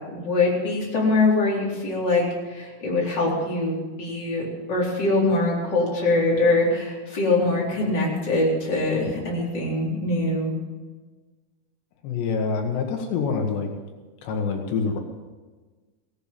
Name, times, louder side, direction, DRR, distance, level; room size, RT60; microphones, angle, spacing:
voice 1, 0.1-10.5, left 2 dB, 25° left, -4 dB, 4.3 m, -23 dB
voice 2, 12.0-13.7 14.2-15.0, left 5 dB, 80° left, 3 dB, 3.6 m, -26 dB
16.5 x 11.5 x 7.6 m, 1.3 s
omnidirectional pair, 4.9 m